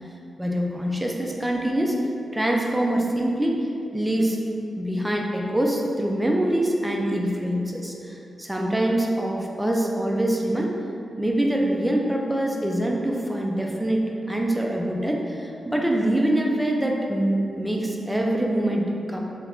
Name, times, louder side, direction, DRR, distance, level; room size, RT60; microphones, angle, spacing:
voice 1, 0.4-2.0 2.3-3.7 3.9-4.4 4.8-10.7 11.2-19.2, right 1 dB, 10° right, -1 dB, 0.4 m, -24 dB
3.3 x 2.8 x 2.5 m, 2.6 s
cardioid pair, 95°, 0 cm